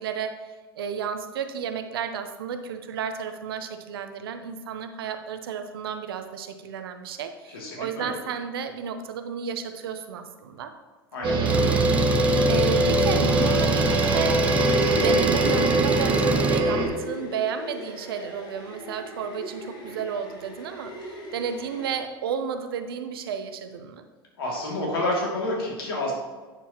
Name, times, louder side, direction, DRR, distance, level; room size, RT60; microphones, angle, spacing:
voice 1, 0.0-10.7 12.5-14.5 14.7-24.0, right 7 dB, 70° right, 8 dB, 0.8 m, -32 dB
voice 2, 7.5-8.1 11.1-11.8 19.9-20.0 24.4-26.1, left 1 dB, 75° left, -3 dB, 2.6 m, -29 dB
sound 1, 11.2-16.9, right 2 dB, 40° right, 1.6 m, -22 dB
Engine, 11.5-16.6, right 3 dB, 10° right, 0.6 m, -28 dB
sound 2, 14.7-21.9, left 1 dB, 35° left, 2.2 m, -41 dB
9.2 x 7.0 x 3.0 m, 1.3 s
figure-of-eight pair, 80°, 13 cm